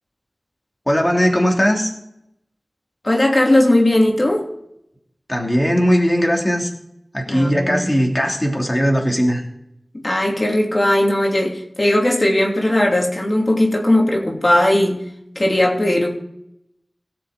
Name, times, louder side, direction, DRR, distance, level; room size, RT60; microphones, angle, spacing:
voice 1, 0.9-1.9 5.3-6.7 7.1-9.4, equal, 20° left, 0 dB, 3.0 m, -18 dB
voice 2, 3.0-4.5 7.3-7.9 10.0-15.0 15.3-16.1, left 1 dB, 45° left, 0 dB, 3.0 m, -17 dB
18.0 x 6.9 x 5.1 m, 0.78 s
wide cardioid pair, 45°, 0 cm